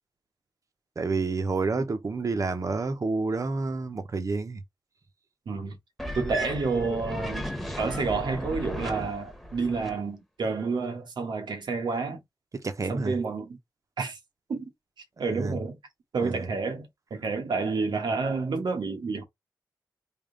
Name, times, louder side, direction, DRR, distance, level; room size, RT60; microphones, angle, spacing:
voice 1, 1.0-4.6 12.5-13.1 15.2-15.6 16.2-16.5, right 3 dB, 45° right, 0.8 m, -29 dB
voice 2, 5.5-5.8 6.1-7.5 7.8-12.2 12.9-13.6 14.0-14.2 14.5-14.7 15.2-15.8 16.1-19.2, right 4 dB, 80° right, 1.1 m, -29 dB
sound 1, 6.0-10.0, equal, 5° left, 1.0 m, -35 dB
3.6 x 2.4 x 3.8 m
wide cardioid pair, 75°, 8 cm